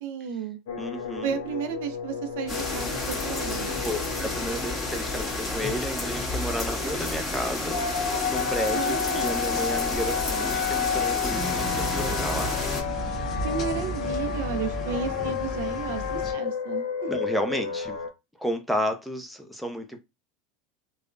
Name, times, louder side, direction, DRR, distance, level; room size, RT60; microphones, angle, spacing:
voice 1, 0.0-0.6 1.2-3.7 8.7-9.4 13.4-17.1, right 6 dB, 70° right, 0.5 m, -33 dB
sound 1, 0.7-18.1, left 7 dB, 75° left, 0.6 m, -32 dB
voice 2, 0.8-1.4 3.7-12.5 15.2-15.3 17.1-18.0 18.4-20.0, equal, ahead, 0.5 m, -32 dB
sound 2, 2.5-12.8, left 2 dB, 15° left, 1.5 m, -31 dB
sound 3, 11.3-16.3, equal, 40° left, 1.1 m, -33 dB
3.1 x 2.0 x 2.4 m
hypercardioid pair, 100°, 0 cm